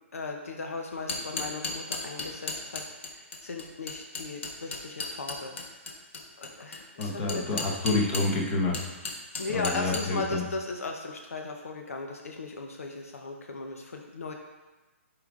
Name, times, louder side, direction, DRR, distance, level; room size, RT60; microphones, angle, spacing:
voice 1, 0.1-5.6 6.4-7.6 9.4-14.3, left 3 dB, 90° left, 2 dB, 0.8 m, -37 dB
sound 1, 0.9-8.4 8.7-10.1, left 3 dB, 55° left, 1.1 m, -34 dB
voice 2, 7.0-8.9 9.5-10.4, left 3 dB, 20° left, -1 dB, 1.0 m, -28 dB
10.5 x 5.0 x 2.5 m, 1.2 s
hypercardioid pair, 160°, 8 cm